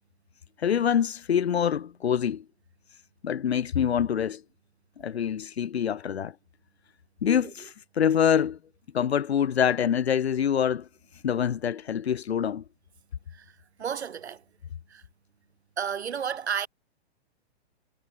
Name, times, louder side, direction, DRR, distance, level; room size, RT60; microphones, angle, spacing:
voice 1, 0.6-2.4 3.2-4.4 5.0-6.3 7.2-8.6 8.9-10.9 11.2-12.6, left 8 dB, 70° left, 1.9 m, -25 dB
voice 2, 13.3-14.4 14.9-15.0 15.8-16.7, right 7 dB, 75° right, 4.2 m, -32 dB
hypercardioid pair, 175°, 33 cm